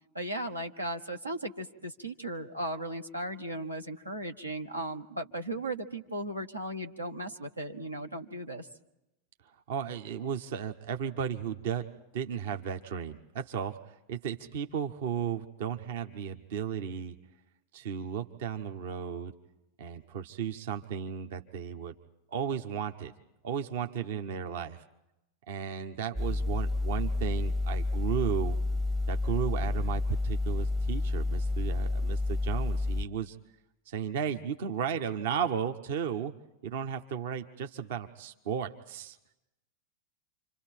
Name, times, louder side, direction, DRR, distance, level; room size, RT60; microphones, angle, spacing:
voice 1, 0.1-8.7, right 1 dB, 85° right, 4 dB, 1.3 m, -36 dB
voice 2, 9.7-11.9 12.1-17.2 17.7-19.3 19.8-21.9 22.3-23.1 23.4-24.8 25.5-28.6 29.1-33.4 33.9-36.3 36.6-39.2, right 8 dB, 55° right, 7 dB, 1.0 m, -34 dB
sound 1, 26.2-33.1, left 2 dB, 15° right, 0.8 m, -30 dB
29.5 x 26.0 x 4.5 m, 0.90 s
figure-of-eight pair, 90°, 0 cm